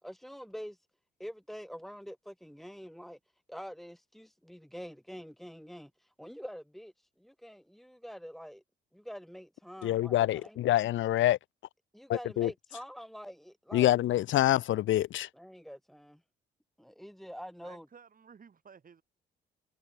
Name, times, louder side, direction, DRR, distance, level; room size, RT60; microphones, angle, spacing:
voice 1, 0.0-0.8 1.2-3.2 3.5-8.6 8.9-10.6 11.9-13.9 15.4-16.2 16.8-17.9, equal, ahead, 3.7 m, -46 dB
voice 2, 9.8-11.4 12.1-12.5 13.7-15.3, left 14 dB, 70° left, 1.0 m, -26 dB
voice 3, 17.6-19.0, right 6 dB, 45° right, 5.3 m, -55 dB
cardioid pair, 80°, 20 cm